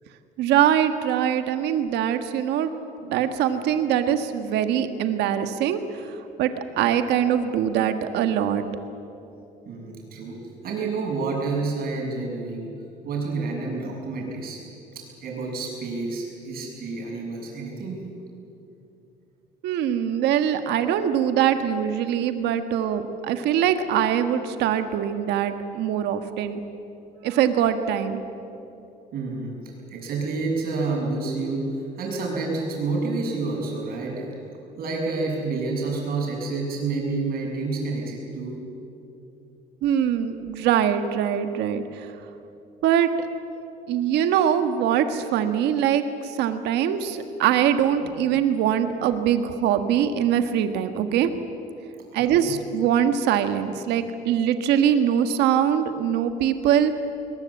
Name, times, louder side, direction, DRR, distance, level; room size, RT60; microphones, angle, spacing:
voice 1, 0.4-2.7 3.0-8.7 19.6-26.6 27.2-28.2 39.8-42.1 42.8-43.1 43.9-51.3 52.1-57.0, right 9 dB, 85° right, 9 dB, 1.5 m, -23 dB
voice 2, 9.7-10.4 10.6-12.7 13.0-14.6 14.9-18.0 29.1-29.6 29.9-31.6 32.0-34.3 34.8-38.6 52.1-52.6, right 3 dB, 65° right, -1 dB, 7.3 m, -29 dB
21.5 x 20.5 x 8.6 m, 2.7 s
cardioid pair, 110°, 17 cm